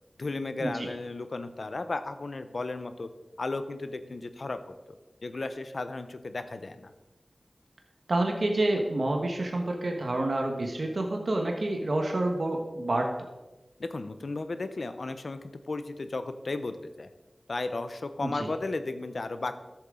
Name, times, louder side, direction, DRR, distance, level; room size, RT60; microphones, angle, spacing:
voice 1, 0.2-3.1 3.4-4.6 5.2-6.9 13.8-17.1 17.5-19.6, left 3 dB, 75° left, 10 dB, 0.7 m, -34 dB
voice 2, 8.1-13.1 18.2-18.5, right 2 dB, 70° right, 2 dB, 1.3 m, -28 dB
13.0 x 7.3 x 3.8 m, 1.1 s
wide cardioid pair, 45°, 0 cm